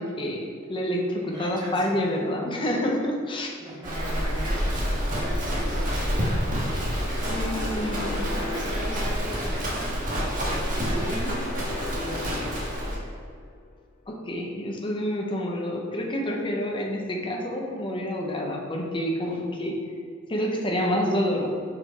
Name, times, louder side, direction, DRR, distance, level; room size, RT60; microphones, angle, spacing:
voice 1, 0.0-3.5 7.3-8.4 14.1-19.8 20.3-21.5, equal, 25° left, 0 dB, 0.9 m, -28 dB
voice 2, 1.2-2.0 3.6-5.9 8.1-10.0 10.4-11.6 12.0-12.4, right 1 dB, 20° right, -5 dB, 1.5 m, -37 dB
Livestock farm animals working animals, 3.8-13.0, equal, 40° right, 1.4 m, -28 dB
sound 1, 7.5-10.3 11.0-13.8, left 5 dB, 40° left, 0.4 m, -41 dB
6.0 x 4.8 x 4.3 m, 2.2 s
head